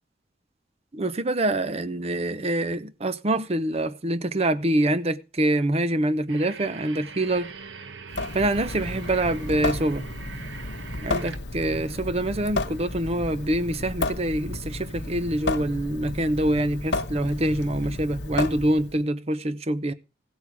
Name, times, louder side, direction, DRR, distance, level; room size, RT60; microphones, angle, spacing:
voice 1, 0.9-7.5 8.3-10.1 11.0-19.9, right 1 dB, 35° right, 0.7 m, -25 dB
sound 1, 6.3-13.8, right 5 dB, 80° right, 1.0 m, -43 dB
Water tap faucet / Sink (filling or washing) / Drip, 8.1-19.0, left 2 dB, 65° left, 1.0 m, -32 dB
16.0 x 8.4 x 3.5 m
head